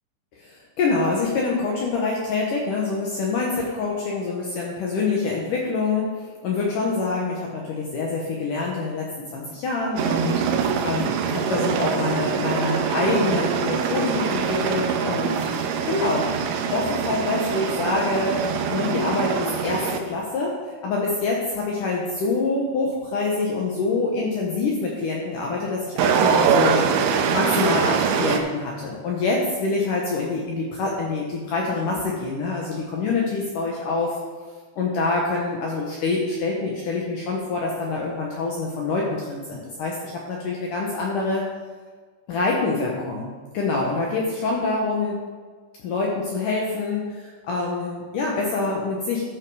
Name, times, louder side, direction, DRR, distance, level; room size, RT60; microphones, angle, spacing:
voice 1, 0.4-9.1 9.3-16.3 16.7-20.5 20.8-26.8 27.3-34.2 34.8-40.0 40.3-41.4 42.3-45.2 45.8-49.2, left 3 dB, 75° left, -2 dB, 1.9 m, -26 dB
sound 1, 10.0-20.0 26.0-28.4, right 6 dB, 80° right, 3.0 m, -23 dB
13.5 x 6.1 x 4.8 m, 1.5 s
omnidirectional pair, 5.4 m